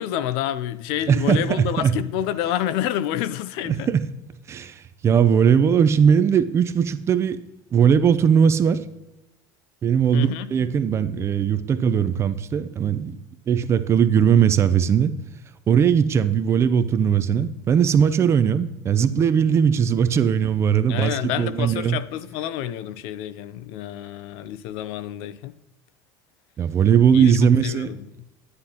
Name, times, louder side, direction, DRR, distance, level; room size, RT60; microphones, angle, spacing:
voice 1, 0.0-3.9 10.1-10.5 20.9-25.5 27.1-28.1, left 11 dB, 70° left, 0.5 m, -28 dB
voice 2, 1.1-2.0 3.7-4.0 4.5-7.4 7.7-8.8 9.8-13.1 13.5-15.1 15.7-22.0 26.6-27.9, right 7 dB, 30° right, 0.5 m, -19 dB
9.7 x 9.6 x 2.9 m
supercardioid pair, 135°, 10 cm